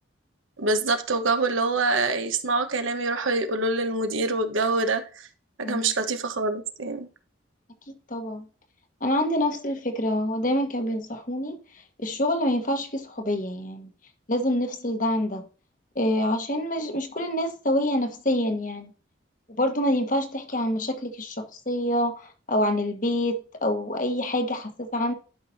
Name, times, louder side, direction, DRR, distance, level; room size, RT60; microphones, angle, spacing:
voice 1, 0.6-5.3 5.6-7.1, right 3 dB, 85° right, 1.3 m, -25 dB
voice 2, 8.1-8.4 9.0-11.6 12.0-13.9 14.3-15.4 15.9-18.9 19.6-21.4 21.7-25.1, left 1 dB, 40° left, 1.4 m, -26 dB
12.0 x 5.8 x 2.8 m
head